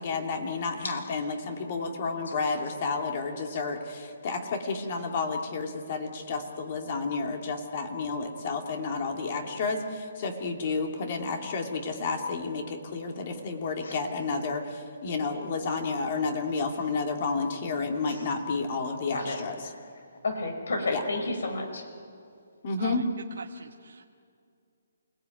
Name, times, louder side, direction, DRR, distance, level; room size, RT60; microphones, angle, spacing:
voice 1, 0.0-19.6 20.9-21.0 22.6-23.0, left 4 dB, 40° left, 3 dB, 2.7 m, -31 dB
voice 2, 19.6-21.8, left 2 dB, 80° left, 6 dB, 5.1 m, -32 dB
voice 3, 22.8-24.0, right 4 dB, 75° right, 4 dB, 1.1 m, -41 dB
29.0 x 18.5 x 9.4 m, 2.4 s
hypercardioid pair, 155°, 0 cm